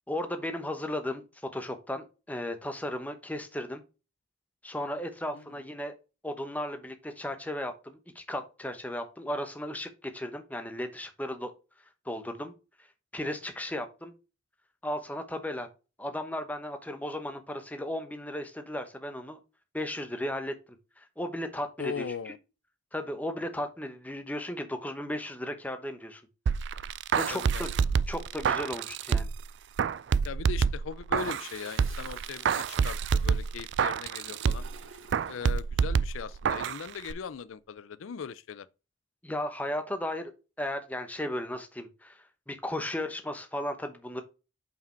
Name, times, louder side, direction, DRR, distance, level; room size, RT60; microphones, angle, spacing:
voice 1, 0.1-3.8 4.6-5.9 6.2-11.5 12.0-12.5 13.1-14.1 14.8-15.7 16.0-19.4 19.7-20.5 21.0-22.3 22.9-26.2 27.2-27.7 28.1-29.3 39.2-40.3 40.6-44.2, left 1 dB, 10° left, 0.9 m, -35 dB
voice 2, 21.8-22.4 27.3-27.7 30.2-34.6 35.3-38.7, left 6 dB, 85° left, 0.4 m, -39 dB
sound 1, 26.5-29.4 29.8-31.5 31.8-34.8 35.1-36.8 37.1-37.2, right 6 dB, 60° right, 0.3 m, -27 dB
Toilet flush, 31.2-35.5 36.8-37.3, right 5 dB, 90° right, 1.5 m, -51 dB
5.6 x 5.0 x 4.4 m
head